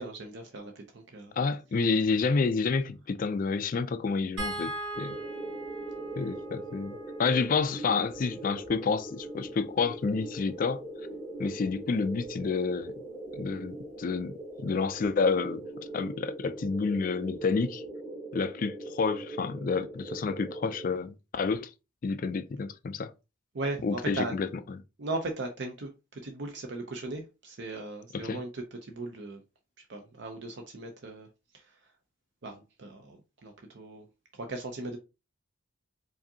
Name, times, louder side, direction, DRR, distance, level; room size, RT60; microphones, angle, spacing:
voice 1, 0.0-1.3 23.5-24.3 25.0-29.4 29.9-31.3 31.5-31.7 32.4-34.1 34.3-35.0, right 2 dB, 60° right, 0.6 m, -38 dB
voice 2, 1.4-5.2 6.2-10.8 11.4-12.9 13.3-14.3 14.6-15.6 15.9-17.8 18.3-21.7 22.0-23.1 23.8-24.8 28.1-28.4, left 4 dB, 40° left, 0.3 m, -29 dB
sound 1, 4.4-10.7 12.2-12.4 12.8-12.9, right 2 dB, 80° right, 2.1 m, -42 dB
sound 2, 4.9-20.9, right 2 dB, 15° right, 1.0 m, -41 dB
4.8 x 2.6 x 2.7 m
head